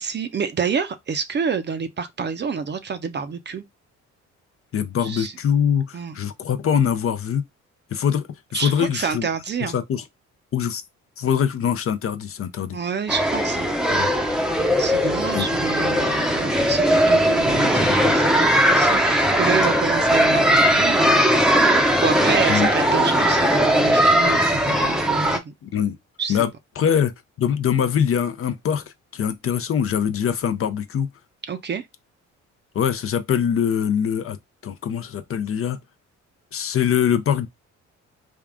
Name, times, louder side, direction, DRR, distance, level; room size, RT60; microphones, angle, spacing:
voice 1, 0.0-3.6 5.0-5.3 5.9-6.2 8.5-9.8 12.7-13.7 14.8-21.3 22.0-25.5 26.2-26.4 31.5-31.8, right 6 dB, 35° right, 0.6 m, -28 dB
voice 2, 4.7-7.4 7.9-9.3 9.6-10.0 10.5-10.8 11.2-12.8 13.9-14.1 15.3-15.5 22.5-22.7 25.6-26.0 26.3-26.5 26.8-28.8 29.1-31.1 32.7-34.4 34.6-35.8 36.5-37.5, left 8 dB, 45° left, 0.6 m, -23 dB
sound 1, 13.1-25.4, equal, ahead, 0.7 m, -19 dB
3.6 x 2.4 x 3.5 m
cardioid pair, 90°, 30 cm